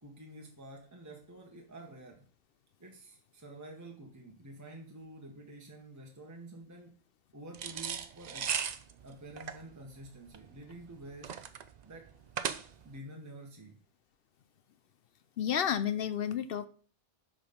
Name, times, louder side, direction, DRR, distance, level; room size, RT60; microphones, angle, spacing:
voice 1, 0.0-2.3 2.8-7.0 7.3-8.5 9.0-11.4 11.8-12.1 12.8-13.8, right 1 dB, 15° right, 1 dB, 1.2 m, -49 dB
sound 1, 7.5-13.0, right 7 dB, 50° right, 0.5 m, -37 dB
voice 2, 15.4-16.7, left 9 dB, 60° left, 13 dB, 0.7 m, -31 dB
6.4 x 5.0 x 5.1 m, 0.40 s
omnidirectional pair, 1.2 m